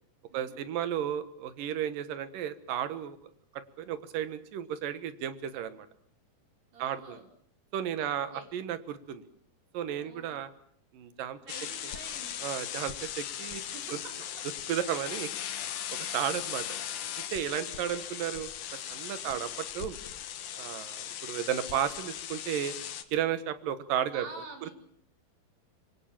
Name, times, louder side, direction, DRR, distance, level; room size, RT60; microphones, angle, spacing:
voice 1, 0.3-3.2 3.5-5.9 6.8-7.2 7.7-9.2 9.7-10.5 10.9-11.4 12.4-13.6 14.7-15.3 16.1-16.6 17.3-20.0 20.6-22.7 23.1-24.3 24.6-24.7, right 10 dB, 70° right, 12 dB, 3.0 m, -33 dB
voice 2, 6.7-7.2 8.0-8.5 10.0-10.3 11.4-12.5 13.6-14.1 16.5-16.6 17.5-18.0 24.1-24.7, right 3 dB, 50° right, 4 dB, 5.6 m, -47 dB
sound 1, 11.5-23.0, left 10 dB, 75° left, 3.2 m, -38 dB
26.5 x 23.0 x 7.4 m, 0.63 s
omnidirectional pair, 4.2 m